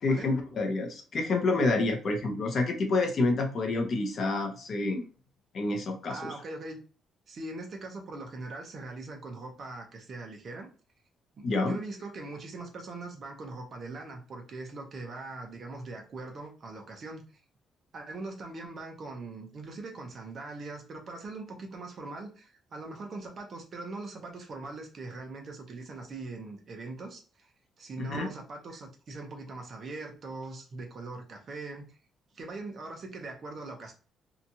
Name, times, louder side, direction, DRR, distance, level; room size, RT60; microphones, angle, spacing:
voice 1, 0.0-5.0 5.5-6.3 11.4-11.8 28.0-28.3, left 3 dB, 35° left, 3 dB, 0.6 m, -28 dB
voice 2, 6.1-6.8 7.3-10.7 11.4-17.3 17.9-27.5 27.8-32.0 32.3-33.9, right 3 dB, 35° right, 2 dB, 0.7 m, -41 dB
2.8 x 2.4 x 2.7 m, 0.36 s
cardioid pair, 175°, 0 cm